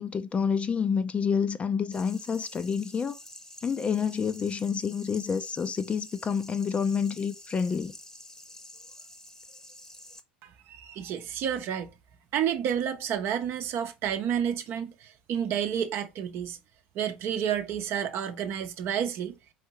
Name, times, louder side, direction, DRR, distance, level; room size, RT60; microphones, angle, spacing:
voice 1, 0.0-3.1 3.6-7.9, left 6 dB, 25° left, 0.5 m, -28 dB
sound 1, 1.9-10.2, left 1 dB, 10° left, 0.9 m, -49 dB
voice 2, 10.4-11.9 12.3-16.6 16.9-19.3, right 9 dB, 50° right, 0.7 m, -30 dB
4.5 x 3.3 x 3.0 m
figure-of-eight pair, 70°, 5 cm